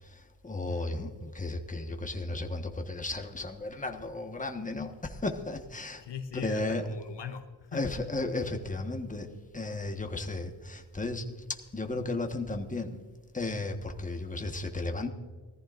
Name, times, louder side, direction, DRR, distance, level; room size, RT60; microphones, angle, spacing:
voice 1, 0.0-6.0 6.4-6.8 7.7-13.0 13.3-15.1, left 2 dB, 15° left, 4 dB, 1.4 m, -34 dB
voice 2, 0.7-1.0 6.0-7.9, left 7 dB, 65° left, 7 dB, 0.9 m, -40 dB
20.0 x 14.5 x 2.6 m, 1.4 s
wide cardioid pair, 90°, 46 cm